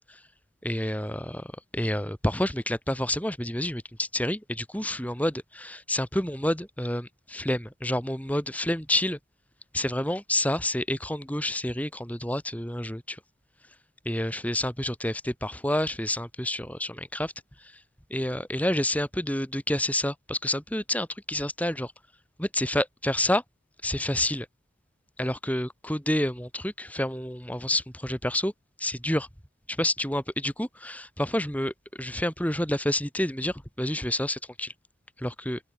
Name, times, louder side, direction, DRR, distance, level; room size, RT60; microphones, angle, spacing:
voice 1, 0.6-9.2 9.7-13.2 14.0-17.3 17.6-17.7 18.1-21.9 22.4-23.4 23.8-24.5 25.2-28.5 28.8-29.3 29.7-34.7 35.2-35.6, left 1 dB, 10° left, 7.5 m, -29 dB
open air
head